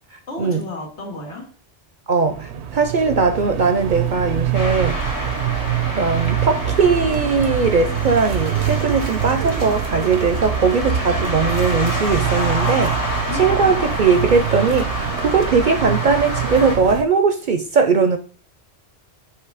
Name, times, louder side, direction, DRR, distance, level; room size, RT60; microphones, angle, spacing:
voice 1, 0.3-1.5 13.3-13.8, left 2 dB, 90° left, 2.5 m, -32 dB
voice 2, 2.1-5.0 5.9-18.2, right 4 dB, 55° right, 0.6 m, -19 dB
sound 1, 2.3-17.0, right 10 dB, 80° right, 1.0 m, -25 dB
sound 2, 4.5-16.8, left 1 dB, 50° left, 2.1 m, -28 dB
8.1 x 3.0 x 4.8 m
omnidirectional pair, 1.1 m